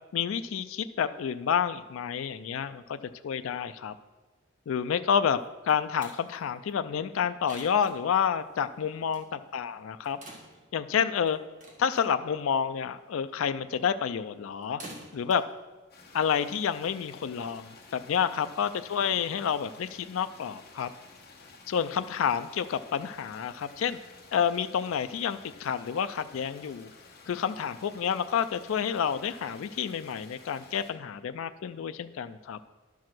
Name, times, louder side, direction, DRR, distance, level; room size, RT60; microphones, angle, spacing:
voice 1, 0.1-3.0 3.2-3.9 4.7-5.4 5.7-10.2 10.7-11.4 11.8-14.8 15.1-15.4 16.1-20.9 21.7-24.0 24.3-26.9 27.3-32.6, left 7 dB, 75° left, 11 dB, 0.3 m, -29 dB
sound 1, 5.4-16.8, right 1 dB, 35° right, 1.7 m, -52 dB
sound 2, 15.9-30.9, left 3 dB, 45° left, 1.3 m, -53 dB
11.5 x 4.7 x 6.0 m, 1.2 s
head